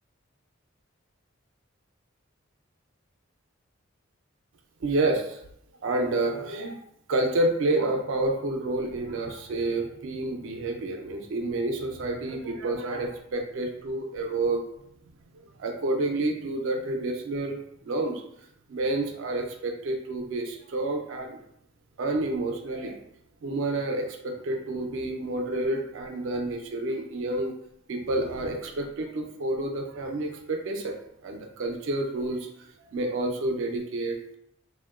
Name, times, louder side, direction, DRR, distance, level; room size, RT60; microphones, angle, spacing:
voice 1, 4.8-5.4 5.8-6.8 7.1-14.6 15.6-17.6 17.9-18.2 18.7-21.4 22.0-23.0 23.4-27.5 27.9-31.0 31.2-34.4, right 2 dB, 70° right, 3 dB, 0.4 m, -29 dB
2.8 x 2.1 x 2.2 m, 0.74 s
head